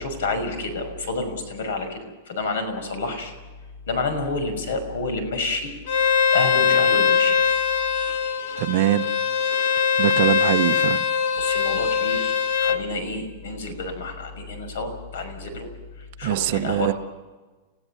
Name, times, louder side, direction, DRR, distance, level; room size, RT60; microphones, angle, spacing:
voice 1, 0.0-2.0 2.3-3.3 3.9-5.7 6.3-7.4 10.4-10.5 11.4-12.3 12.6-15.7 16.0-16.9, left 3 dB, 80° left, 5.9 m, -29 dB
Bowed string instrument, 5.9-12.8, left 6 dB, 60° left, 1.5 m, -21 dB
voice 2, 8.6-9.0 10.0-11.0 16.2-16.9, right 14 dB, 45° right, 0.9 m, -22 dB
30.0 x 16.0 x 7.2 m
supercardioid pair, 170°, 0 cm